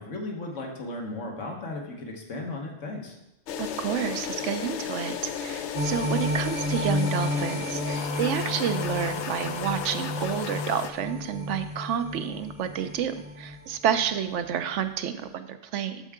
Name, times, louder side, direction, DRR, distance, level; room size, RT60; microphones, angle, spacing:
voice 1, 0.0-3.2, left 2 dB, 85° left, 1 dB, 1.6 m, -35 dB
sound 1, 3.5-10.9, left 7 dB, 70° left, 0.8 m, -34 dB
voice 2, 3.6-16.0, right 8 dB, 75° right, 9 dB, 0.9 m, -30 dB
sound 2, 5.7-14.1 14.5-14.6, left 1 dB, 30° right, 0.6 m, -32 dB
12.5 x 4.6 x 3.6 m, 0.89 s
omnidirectional pair, 1.3 m